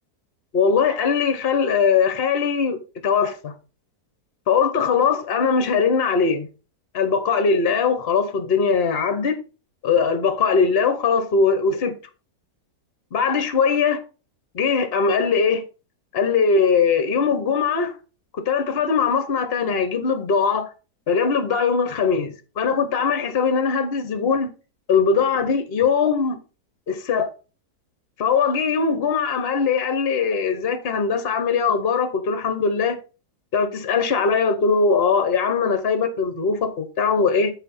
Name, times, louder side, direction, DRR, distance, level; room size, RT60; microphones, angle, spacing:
voice 1, 0.5-3.5 4.5-6.5 6.9-9.4 9.8-11.9 13.1-14.0 14.5-15.6 16.1-17.9 18.5-20.7 21.1-24.5 24.9-26.4 26.9-27.3 28.2-33.0 33.5-37.5, left 5 dB, 45° left, 1.0 m, -21 dB
8.1 x 4.3 x 5.5 m
omnidirectional pair, 1.8 m